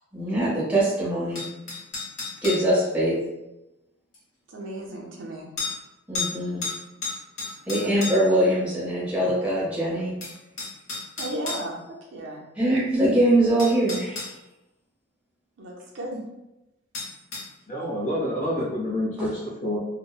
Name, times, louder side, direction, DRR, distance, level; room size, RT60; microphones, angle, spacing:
voice 1, 0.1-1.4 2.4-3.2 6.1-6.7 7.6-10.1 12.6-14.4 19.2-19.3, right 1 dB, 5° right, -9 dB, 0.8 m, -23 dB
sound 1, 1.3-2.7 4.1-4.2 5.6-5.8 6.1-6.3 6.6-8.4 9.7-9.8 10.2-11.6 13.0-13.1 13.6-14.3 16.9-17.5, left 3 dB, 80° left, 0.9 m, -32 dB
voice 2, 4.5-5.5 7.8-7.9 11.2-12.4 12.7-12.8 15.6-16.2, right 1 dB, 65° right, -1 dB, 0.5 m, -35 dB
voice 3, 17.7-19.8, equal, 40° left, -4 dB, 0.6 m, -28 dB
2.8 x 2.0 x 2.3 m, 0.95 s
head